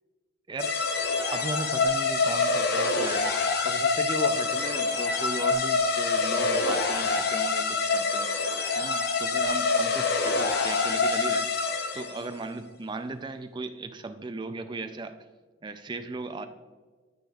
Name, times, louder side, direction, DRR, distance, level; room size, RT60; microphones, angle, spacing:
voice 1, 0.5-0.8 1.3-3.3 3.6-8.5 8.8-11.6 11.9-15.2 15.6-16.5, right 3 dB, 20° right, 8 dB, 0.3 m, -37 dB
sound 1, 0.6-12.3, left 4 dB, 50° left, 0.6 m, -26 dB
10.0 x 4.9 x 2.3 m, 1.4 s
head